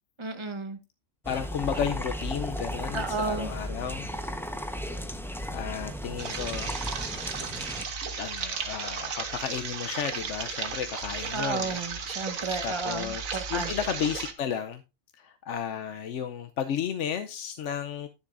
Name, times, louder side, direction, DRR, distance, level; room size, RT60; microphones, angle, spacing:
voice 1, 0.2-0.8 2.9-3.5 11.3-13.7, right 4 dB, 25° right, 1.0 m, -32 dB
sound 1, 1.2-7.8, equal, ahead, 0.8 m, -35 dB
voice 2, 1.3-4.1 4.7-4.8 5.5-6.8 8.2-12.1 12.6-13.2 13.5-14.8 15.1-18.1, left 8 dB, 65° left, 1.0 m, -33 dB
sound 2, 6.2-14.3, right 5 dB, 80° right, 1.6 m, -35 dB
10.5 x 10.0 x 2.5 m
omnidirectional pair, 1.4 m